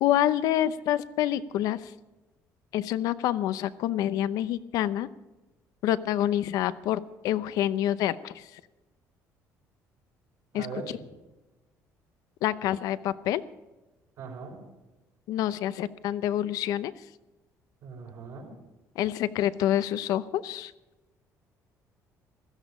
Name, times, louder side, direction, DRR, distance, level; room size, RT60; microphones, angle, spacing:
voice 1, 0.0-1.9 2.7-5.1 5.8-8.5 10.5-10.7 12.4-13.4 15.3-16.9 19.0-20.7, left 12 dB, 80° left, 15 dB, 0.7 m, -27 dB
voice 2, 10.5-10.8 14.2-14.6 17.8-18.5, right 5 dB, 65° right, 0 dB, 4.8 m, -40 dB
16.5 x 13.0 x 5.0 m, 1.1 s
cardioid pair, 130°, 6 cm